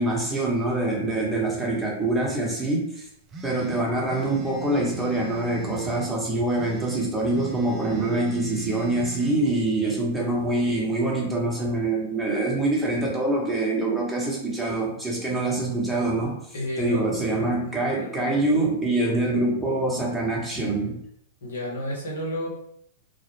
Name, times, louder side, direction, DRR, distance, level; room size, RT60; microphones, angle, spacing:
voice 1, 0.0-3.1 3.4-16.4 16.8-21.0, right 2 dB, 5° right, -4 dB, 0.8 m, -25 dB
sound 1, 3.3-6.1 6.5-9.3, right 7 dB, 30° right, 0.4 m, -38 dB
voice 2, 16.5-18.1 21.4-22.5, equal, 70° left, -2 dB, 0.8 m, -32 dB
2.1 x 2.0 x 3.1 m, 0.72 s
hypercardioid pair, 105°, 0 cm